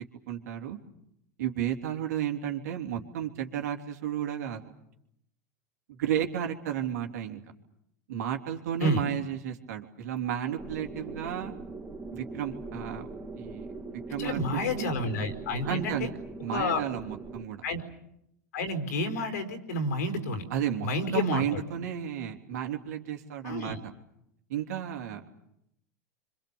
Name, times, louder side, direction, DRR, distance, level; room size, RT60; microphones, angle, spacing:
voice 1, 0.3-0.8 1.4-4.6 5.9-7.4 8.1-11.5 12.1-13.1 13.3-13.7 14.1-14.9 15.6-16.1 16.4-17.6 20.5-20.9 21.1-23.9 24.5-25.3, right 10 dB, 75° right, 4 dB, 3.2 m, -33 dB
sound 1, 10.6-17.4, right 3 dB, 15° right, 2.8 m, -41 dB
voice 2, 14.2-16.1 16.5-16.8 17.6-17.8 18.5-20.4 20.8-21.6 23.4-23.8, left 1 dB, 80° left, 6 dB, 4.6 m, -30 dB
29.0 x 25.5 x 7.1 m, 0.78 s
hypercardioid pair, 95°, 9 cm